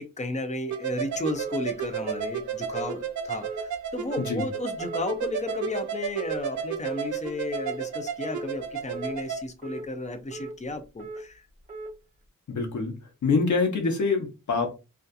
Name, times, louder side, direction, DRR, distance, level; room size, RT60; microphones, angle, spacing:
voice 1, 0.0-11.5, left 2 dB, 25° left, 0.4 m, -33 dB
sound 1, 0.7-9.4, right 8 dB, 65° right, 0.5 m, -33 dB
sound 2, 1.3-1.5 2.0-2.2 2.7-2.9 3.4-3.6 4.1-4.3 4.8-5.0 5.5-5.7 6.2-6.4 6.8-7.1 7.5-7.8 8.2-8.4 8.9-9.1 9.6-9.8 10.3-10.5 11.0-11.2 11.7-11.9, right 2 dB, 25° right, 0.9 m, -38 dB
voice 2, 12.5-12.9 13.2-14.7, left 4 dB, 65° left, 0.8 m, -25 dB
2.6 x 2.3 x 2.3 m
wide cardioid pair, 140°, 32 cm